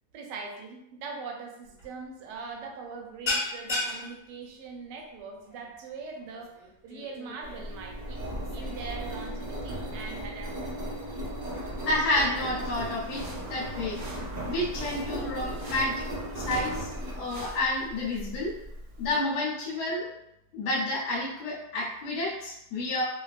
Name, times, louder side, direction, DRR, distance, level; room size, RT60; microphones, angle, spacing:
voice 1, 0.1-6.6 6.8-8.2 8.5-11.0, right 4 dB, 90° right, 2 dB, 1.2 m, -41 dB
sound 1, 1.6-1.9 2.2-2.5 2.7-9.6, left 2 dB, 35° left, 1.3 m, -36 dB
Engine, 7.4-19.1, right 1 dB, 40° right, 0.6 m, -36 dB
voice 2, 11.9-13.2 13.5-14.0 14.5-16.0 16.3-16.9 17.2-18.5 19.0-20.1 20.5-23.0, left 2 dB, 75° left, -7 dB, 1.3 m, -29 dB
sound 2, 12.7-17.7, right 1 dB, 65° right, 1.1 m, -46 dB
3.2 x 2.2 x 2.4 m, 0.83 s
omnidirectional pair, 1.8 m